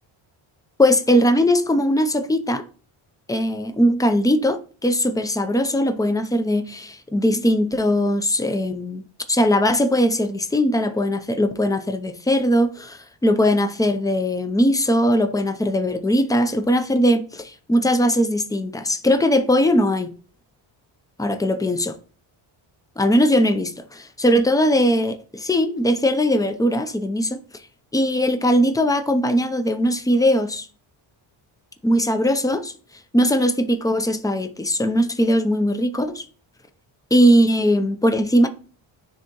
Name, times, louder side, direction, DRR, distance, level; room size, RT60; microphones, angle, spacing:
voice 1, 0.8-2.6 3.3-9.0 9.3-20.1 21.2-22.0 23.0-27.4 27.9-30.7 31.8-32.7 33.1-36.2 37.1-38.5, equal, 5° left, 0.6 m, -20 dB
10.0 x 3.4 x 3.0 m
cardioid pair, 115°, 50 cm